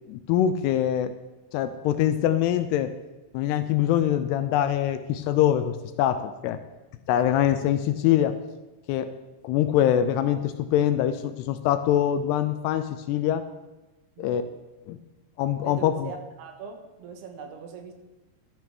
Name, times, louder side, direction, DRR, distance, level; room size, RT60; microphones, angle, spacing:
voice 1, 0.1-1.1 1.5-2.9 3.3-6.6 7.1-8.4 8.9-9.1 9.4-13.5 14.2-14.4 14.9-15.0 15.4-16.1, left 11 dB, 80° left, 10 dB, 2.5 m, -24 dB
voice 2, 14.2-14.5 15.6-17.9, right 6 dB, 75° right, 4 dB, 3.0 m, -41 dB
13.5 x 12.0 x 3.5 m, 1.1 s
omnidirectional pair, 5.0 m